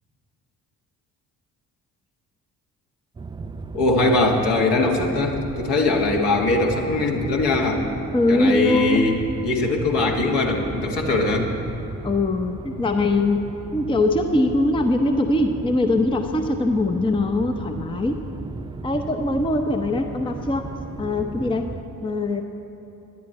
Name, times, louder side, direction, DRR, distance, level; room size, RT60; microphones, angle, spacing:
sound 1, 3.2-21.8, right 3 dB, 10° right, 0.4 m, -36 dB
voice 1, 3.7-8.0 8.3-11.5, left 2 dB, 55° left, 1 dB, 1.9 m, -21 dB
voice 2, 8.1-9.2 12.0-13.4 13.7-18.2 18.8-20.6 21.0-21.7 22.0-22.4, left 2 dB, 10° left, 5 dB, 0.8 m, -22 dB
18.0 x 11.0 x 4.2 m, 3.0 s
figure-of-eight pair, 45°, 49 cm